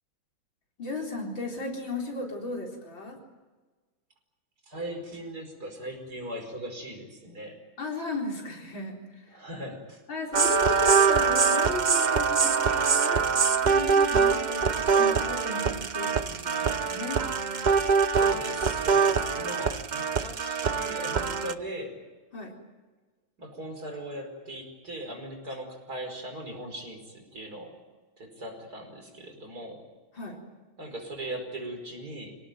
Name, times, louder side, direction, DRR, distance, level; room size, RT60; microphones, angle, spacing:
voice 1, 0.8-3.2 7.8-9.4 10.1-13.3 13.6-17.2 22.3-22.6 30.1-30.4, left 2 dB, 75° left, 0 dB, 4.9 m, -36 dB
voice 2, 4.7-7.6 9.3-10.0 18.2-22.0 23.4-27.8 28.2-29.9 30.8-32.3, right 1 dB, 50° right, 4 dB, 5.5 m, -39 dB
sound 1, 10.3-21.5, right 5 dB, 70° right, 0.4 m, -24 dB
26.5 x 18.5 x 9.3 m, 1.3 s
omnidirectional pair, 2.1 m